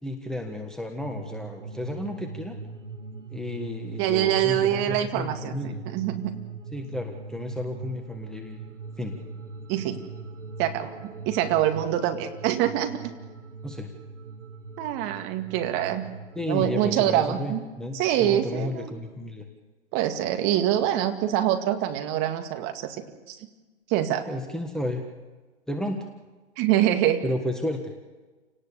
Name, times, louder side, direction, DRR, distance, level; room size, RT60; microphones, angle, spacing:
voice 1, 0.0-2.6 3.3-5.8 6.7-9.1 13.6-13.9 16.3-19.5 24.3-25.0 25.7-26.1 27.2-27.9, left 1 dB, ahead, 3 dB, 1.5 m, -32 dB
sound 1, 1.0-16.7, right 4 dB, 85° right, 1.4 m, -41 dB
voice 2, 4.0-6.3 9.7-10.0 10.6-13.0 14.8-16.0 16.5-17.6 17.9-18.9 19.9-23.0 23.3-23.4 23.9-24.3 26.6-27.2, right 12 dB, 30° right, 6 dB, 2.2 m, -25 dB
29.0 x 18.5 x 6.9 m, 1.2 s
hypercardioid pair, 125°, 36 cm